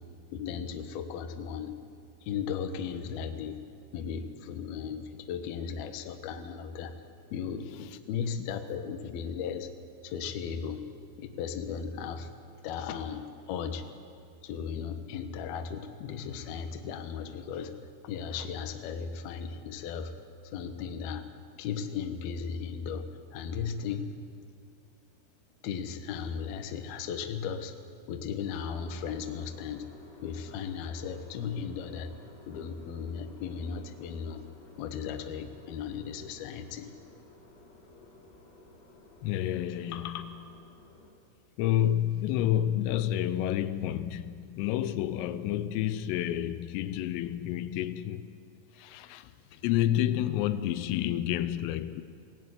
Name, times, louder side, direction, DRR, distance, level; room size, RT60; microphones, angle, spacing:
voice 1, 0.3-1.8 2.2-3.6 3.9-7.0 7.3-9.7 10.0-10.8 11.2-12.3 12.6-13.9 14.4-20.1 20.4-21.3 21.6-24.1 25.6-27.7 28.1-29.9 30.2-32.1 32.5-34.4 34.8-36.9 39.9-40.3 49.4-49.5, left 7 dB, 65° left, 2.5 m, -36 dB
sound 1, 28.4-41.1, left 2 dB, 40° left, 3.2 m, -55 dB
voice 2, 39.2-40.3 41.6-48.3 48.7-52.0, left 12 dB, 85° left, 3.4 m, -29 dB
21.5 x 17.0 x 9.5 m
omnidirectional pair, 5.8 m